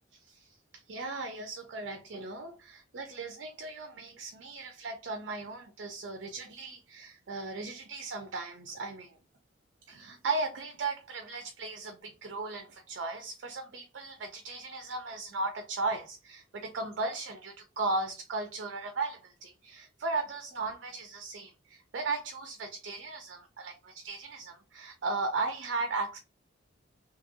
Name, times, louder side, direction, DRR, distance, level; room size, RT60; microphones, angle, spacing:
voice 1, 0.2-9.2 9.9-26.2, right 3 dB, 60° right, 0.4 m, -36 dB
2.9 x 2.5 x 2.5 m
head